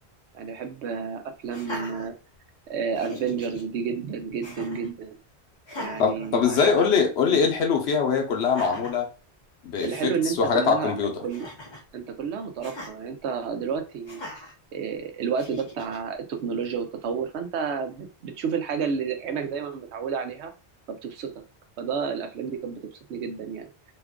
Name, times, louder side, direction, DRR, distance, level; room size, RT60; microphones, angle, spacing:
voice 1, 0.3-2.1 2.7-5.2 5.8-6.9 9.8-11.0 11.2-11.5 11.9-14.2 14.7-20.5 21.0-21.4 21.8-22.8 23.1-23.7, right 6 dB, 90° right, 0.9 m, -30 dB
Laughter, 1.5-2.6 2.9-3.6 4.4-4.9 5.6-6.9 7.2-7.5 8.4-9.0 9.5-9.6 9.8-10.2 11.3-11.9 12.6-12.9 14.1-14.5 15.4-16.0, left 1 dB, 30° left, 0.7 m, -40 dB
voice 2, 6.0-9.1 9.6-11.1, left 6 dB, 75° left, 1.0 m, -23 dB
3.0 x 2.3 x 3.5 m
omnidirectional pair, 1.1 m